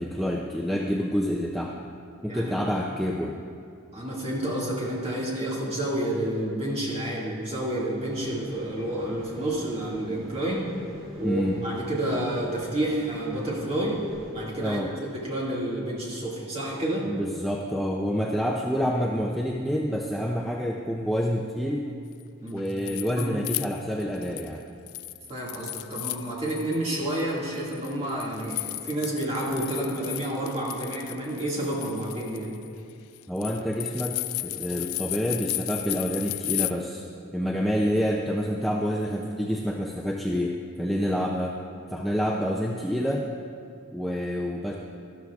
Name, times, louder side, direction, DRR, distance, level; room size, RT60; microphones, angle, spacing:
voice 1, 0.0-1.8 2.2-3.4 11.2-11.5 14.6-14.9 17.0-21.9 22.5-24.6 33.3-37.0 37.3-41.6 41.9-43.3 43.9-44.7, equal, ahead, -2 dB, 0.4 m, -28 dB
voice 2, 2.3-2.6 3.9-10.7 11.2-14.0 14.3-17.1 22.4-22.6 23.1-23.4 25.3-32.5, right 1 dB, 30° right, -5 dB, 2.0 m, -30 dB
sound 1, 8.0-14.3, right 1 dB, 65° right, 2.8 m, -46 dB
sound 2, 22.5-24.5 24.9-26.8 27.1-36.7, left 17 dB, 90° left, 0.3 m, -34 dB
13.0 x 12.5 x 2.4 m, 2.3 s
head